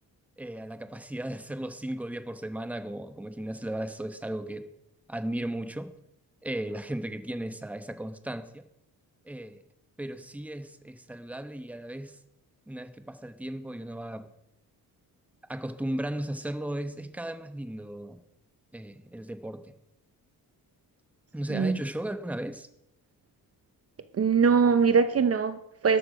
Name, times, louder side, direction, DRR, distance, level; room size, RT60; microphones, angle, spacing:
voice 1, 0.4-4.7 5.1-5.9 6.4-8.6 9.3-9.6 10.0-12.2 12.7-14.3 15.5-18.2 18.7-19.7 21.3-22.7, right 1 dB, 5° right, 9 dB, 1.0 m, -36 dB
voice 2, 24.1-26.0, right 5 dB, 40° right, 11 dB, 0.8 m, -22 dB
13.5 x 11.5 x 5.1 m, 0.82 s
cardioid pair, 130°, 37 cm